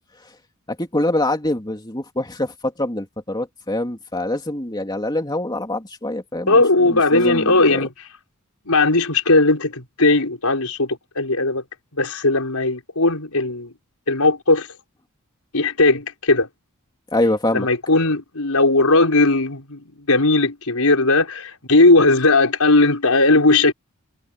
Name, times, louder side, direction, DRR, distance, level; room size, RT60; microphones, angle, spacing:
voice 1, 0.7-7.9 17.1-17.7, left 1 dB, 20° left, 2.8 m, -24 dB
voice 2, 6.5-7.9 8.7-11.6 12.0-13.7 14.1-14.7 15.5-16.5 17.5-23.7, left 2 dB, 85° left, 5.0 m, -17 dB
head